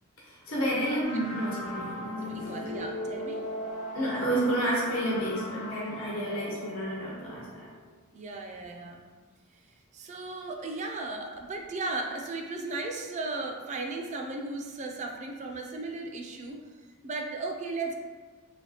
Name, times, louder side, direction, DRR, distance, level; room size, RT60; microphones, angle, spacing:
voice 1, 0.3-2.7 3.9-7.7, right 1 dB, 70° left, -5 dB, 1.1 m, -30 dB
voice 2, 0.9-1.2 2.2-3.4 8.1-9.0 9.7-16.6 17.0-18.0, right 3 dB, 30° right, 2 dB, 0.3 m, -36 dB
sound 1, 1.0-7.9, left 1 dB, 40° left, 1.0 m, -39 dB
3.3 x 3.0 x 2.8 m, 1.4 s
head